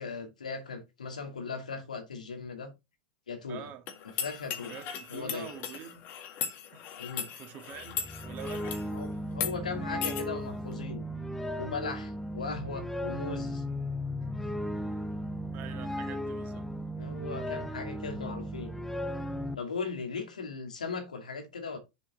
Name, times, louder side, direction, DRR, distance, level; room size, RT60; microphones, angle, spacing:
voice 1, 0.0-2.7 3.3-3.7 4.2-4.8 5.1-5.5 7.0-7.3 8.9-11.0 11.6-13.6 17.0-18.7 19.6-21.8, left 4 dB, 90° left, 2.1 m, -38 dB
voice 2, 3.5-3.9 4.6-6.1 6.7-6.9 7.4-8.0 8.2-8.9 15.5-16.7, right 10 dB, 45° right, 1.9 m, -45 dB
sound 1, 3.9-8.9 9.3-9.5 10.0-10.2, left 8 dB, 50° left, 1.8 m, -37 dB
sound 2, 7.8-19.6, equal, 5° left, 0.8 m, -36 dB
6.9 x 5.1 x 4.2 m
hypercardioid pair, 95°, 4 cm